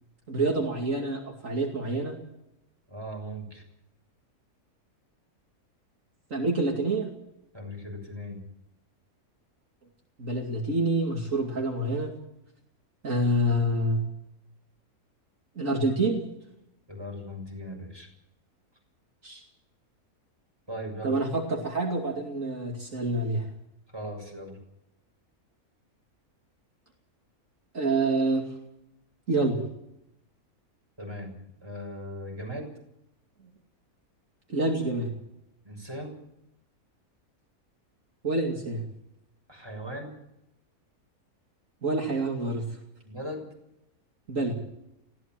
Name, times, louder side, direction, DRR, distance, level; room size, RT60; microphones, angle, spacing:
voice 1, 0.3-2.1 6.3-7.1 10.2-12.1 13.0-14.0 15.6-16.3 19.2-19.4 21.0-23.5 27.7-28.4 29.3-29.6 34.5-35.1 38.2-38.8 41.8-42.7 44.3-44.6, right 2 dB, 55° right, 0 dB, 2.9 m, -27 dB
voice 2, 2.9-3.6 7.5-8.4 16.9-18.1 20.7-21.2 23.9-24.6 31.0-31.3 31.6-32.7 35.6-36.2 39.5-40.2 43.0-43.5, equal, 15° right, 1 dB, 6.6 m, -38 dB
21.0 x 17.0 x 7.7 m, 0.83 s
omnidirectional pair, 1.6 m